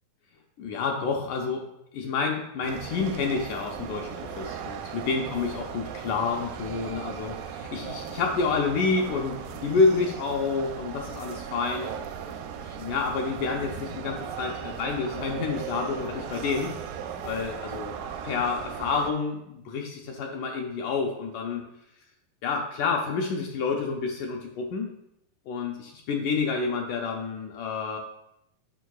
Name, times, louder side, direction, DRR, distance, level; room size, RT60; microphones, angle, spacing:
voice 1, 0.6-1.6 1.9-11.9 12.6-16.7 17.2-17.9 18.2-21.6 22.4-24.9 25.5-28.0, left 4 dB, 75° left, 1 dB, 1.9 m, -29 dB
sound 1, 2.6-19.1, right 8 dB, 85° right, 2.4 m, -37 dB
9.2 x 6.2 x 2.3 m, 0.81 s
omnidirectional pair, 4.0 m